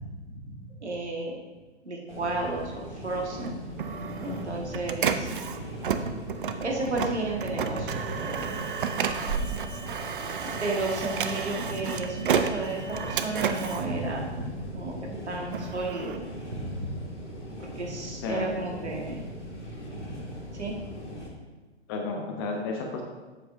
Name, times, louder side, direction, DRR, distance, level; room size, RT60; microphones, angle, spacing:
voice 1, 0.0-1.4 1.8-3.6 4.2-5.3 6.6-8.6 10.4-16.2 16.5-16.9 17.6-19.2 20.5-20.7, right 2 dB, 70° right, -1 dB, 1.6 m, -33 dB
sound 1, 2.1-21.3, right 1 dB, 80° left, 1.7 m, -39 dB
Printer, 3.4-14.8 15.3-17.1, right 7 dB, 50° right, 0.5 m, -32 dB
sound 2, 8.1-13.7, right 1 dB, 30° right, 1.9 m, -46 dB
voice 2, 18.2-18.6 21.9-23.0, left 3 dB, 20° left, 2 dB, 0.6 m, -32 dB
7.7 x 7.6 x 2.6 m, 1.2 s
figure-of-eight pair, 115°, 35 cm